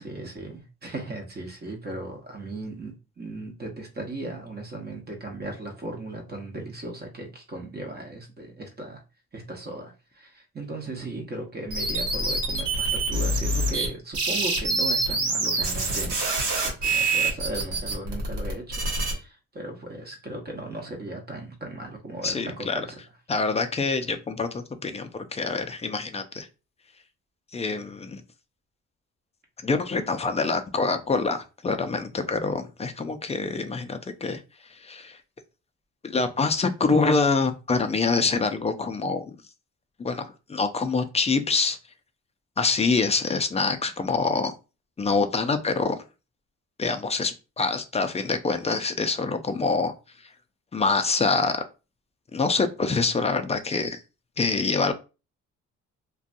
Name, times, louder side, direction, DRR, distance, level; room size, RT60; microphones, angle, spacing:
voice 1, 0.0-9.0 9.3-16.2 16.6-23.0, right 2 dB, 35° right, 2 dB, 0.9 m, -37 dB
sound 1, 11.7-13.9 14.1-19.1, right 2 dB, 85° right, 1.1 m, -26 dB
voice 2, 22.2-22.8 23.3-26.5 27.5-28.2 29.6-34.4 34.7-35.2 36.0-39.3 40.0-41.8 42.6-44.5 45.0-46.0 46.8-49.9 50.7-51.5 52.3-54.0 54.4-54.9, left 4 dB, 20° left, 8 dB, 0.4 m, -25 dB
2.6 x 2.3 x 2.5 m, 0.30 s
cardioid pair, 90°, 30 cm